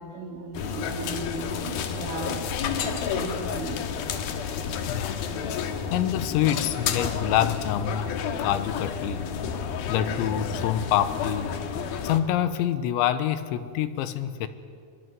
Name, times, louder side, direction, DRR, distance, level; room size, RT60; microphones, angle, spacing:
voice 1, 0.0-2.5 2.8-3.8 9.7-10.1, right 3 dB, 80° right, -1 dB, 4.9 m, -37 dB
sound 1, 0.5-12.2, left 7 dB, 65° left, 3.0 m, -30 dB
voice 2, 4.9-5.3 5.9-9.3 9.9-11.5 12.0-14.5, left 11 dB, 85° left, 12 dB, 3.4 m, -26 dB
24.5 x 23.0 x 9.4 m, 2.2 s
omnidirectional pair, 5.2 m